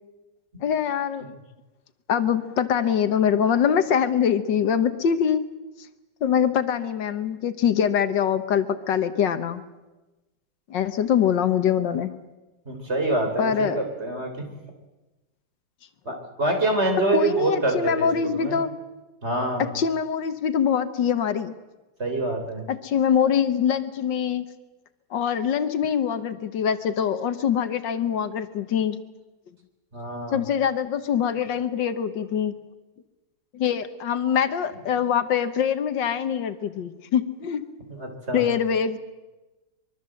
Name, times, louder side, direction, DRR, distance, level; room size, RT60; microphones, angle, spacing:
voice 1, 0.6-1.3 2.1-5.4 6.2-9.6 10.7-12.1 13.4-13.8 17.1-18.7 19.7-21.5 22.7-24.4 25.1-29.0 30.3-32.5 33.5-37.6 38.3-39.0, left 8 dB, 80° left, 10 dB, 1.8 m, -23 dB
voice 2, 12.7-14.5 16.1-18.6 19.2-19.7 22.0-22.6 29.9-30.4 38.0-38.5, right 2 dB, 35° right, 4 dB, 4.0 m, -26 dB
24.0 x 23.0 x 7.8 m, 1.1 s
omnidirectional pair, 1.9 m